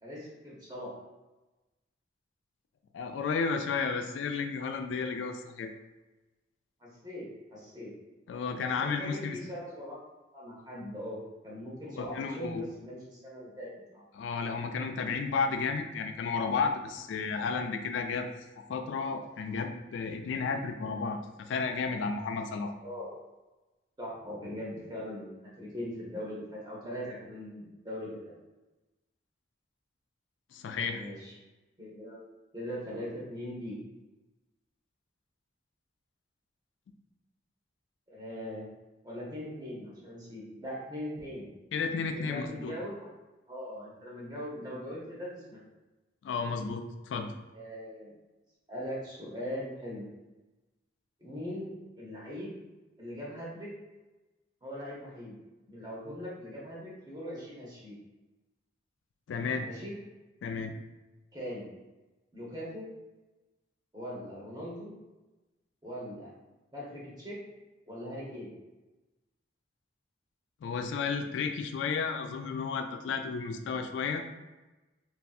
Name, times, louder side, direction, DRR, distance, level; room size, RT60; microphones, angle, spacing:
voice 1, 0.0-0.9 6.8-7.9 8.8-10.0 10.3-11.2 11.4-14.0 22.8-23.2 24.0-28.3 30.9-31.3 31.8-32.2 32.5-33.8 38.1-38.7 39.0-41.5 42.1-43.1 43.5-45.6 47.5-48.1 48.7-50.0 51.2-52.6 53.0-53.7 54.6-55.4 55.7-57.9 59.6-59.9 61.3-61.7 62.3-62.9 63.9-64.9 65.8-66.3 66.7-67.4 67.9-68.5, equal, 20° right, -5 dB, 0.8 m, -40 dB
voice 2, 2.9-5.7 8.3-9.4 12.0-12.6 14.2-18.3 18.7-22.7 30.5-31.0 41.7-42.7 46.2-47.3 59.3-59.7 60.4-60.7 70.6-74.2, left 5 dB, 85° left, 6 dB, 0.3 m, -32 dB
3.1 x 2.6 x 2.3 m, 1.1 s
head